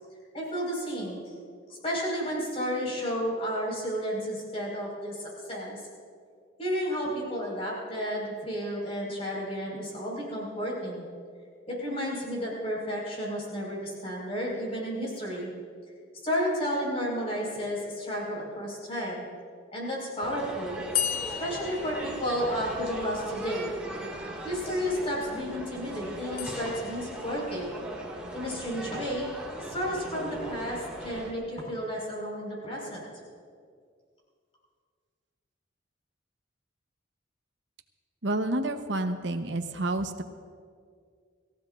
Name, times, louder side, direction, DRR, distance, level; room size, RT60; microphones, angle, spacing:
voice 1, 0.3-1.3 1.7-5.8 6.6-11.0 11.7-15.5 16.2-19.2 19.7-20.8 21.4-23.7 24.4-27.7 28.3-29.3 29.7-33.0, equal, 30° left, -3 dB, 4.9 m, -32 dB
sound 1, 20.2-31.3, right 1 dB, 5° right, 2.0 m, -39 dB
sound 2, 20.9-22.9 26.4-27.4, left 9 dB, 50° left, 0.6 m, -34 dB
voice 2, 38.2-40.2, right 2 dB, 70° right, 7 dB, 0.9 m, -29 dB
26.0 x 15.0 x 2.5 m, 2.1 s
head